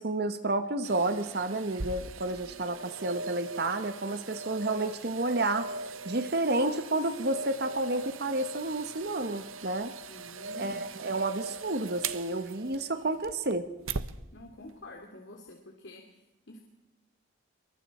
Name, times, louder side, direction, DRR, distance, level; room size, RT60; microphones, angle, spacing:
voice 1, 0.0-5.7 6.0-9.9 10.6-13.7, right 2 dB, 50° right, 9 dB, 1.2 m, -30 dB
sound 1, 0.8-14.2 14.7-14.8, right 3 dB, 90° right, 1.1 m, -40 dB
voice 2, 10.1-10.8 14.3-16.6, left 1 dB, 60° left, 2 dB, 2.7 m, -48 dB
27.5 x 23.5 x 4.4 m, 0.99 s
head